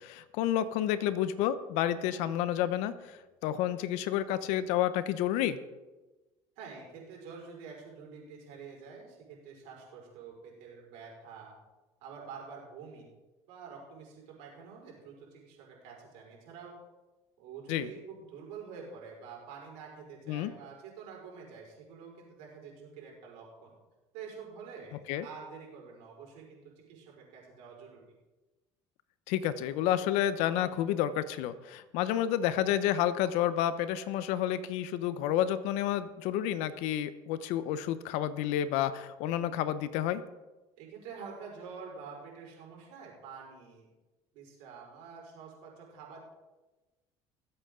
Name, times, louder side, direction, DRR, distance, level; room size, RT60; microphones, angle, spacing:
voice 1, 0.0-3.2 3.4-5.6 17.7-17.9 20.3-20.5 25.1-25.2 29.3-40.2, left 11 dB, 75° left, 14 dB, 0.9 m, -30 dB
voice 2, 6.6-11.6 12.0-13.1 13.5-16.8 17.4-23.7 24.1-28.2 40.8-43.9 44.3-46.2, right 5 dB, 80° right, -2 dB, 5.2 m, -47 dB
20.5 x 8.1 x 3.8 m, 1.1 s
supercardioid pair, 95°, 12 cm